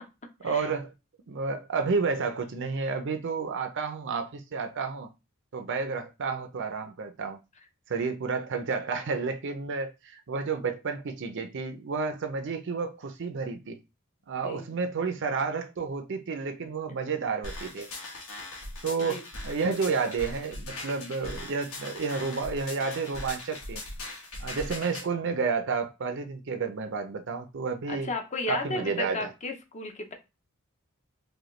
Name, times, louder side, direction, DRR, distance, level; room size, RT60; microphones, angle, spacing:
voice 1, 0.4-0.9 1.3-5.1 5.5-7.4 7.9-13.8 14.3-17.9 18.8-23.8 24.4-28.1 28.5-29.3, right 4 dB, 55° right, 0.5 m, -31 dB
sound 1, 17.4-25.1, left 2 dB, 80° left, 1.3 m, -40 dB
voice 2, 27.9-30.1, left 3 dB, 30° left, 0.6 m, -34 dB
4.8 x 2.2 x 3.1 m
head